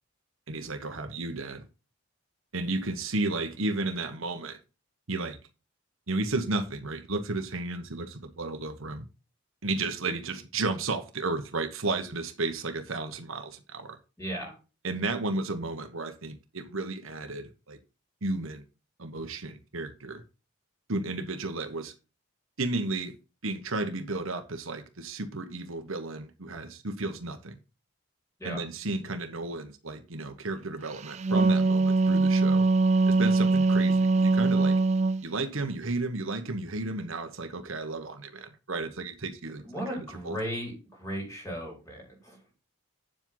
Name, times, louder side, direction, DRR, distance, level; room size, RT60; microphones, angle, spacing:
voice 1, 0.5-1.6 2.5-4.6 5.1-5.4 6.1-9.1 9.6-14.0 14.8-17.8 18.2-18.6 19.0-20.2 20.9-21.9 22.6-23.2 23.4-27.6 28.4-32.7 33.1-34.8 35.2-39.6 39.9-40.4, right 2 dB, 70° right, 1.2 m, -33 dB
voice 2, 14.2-14.5 28.4-28.6 39.7-42.5, equal, 15° left, 4.5 m, -36 dB
Wind instrument woodwind instrument, 31.0-35.2, right 3 dB, 30° right, 0.3 m, -22 dB
8.9 x 7.6 x 3.9 m
head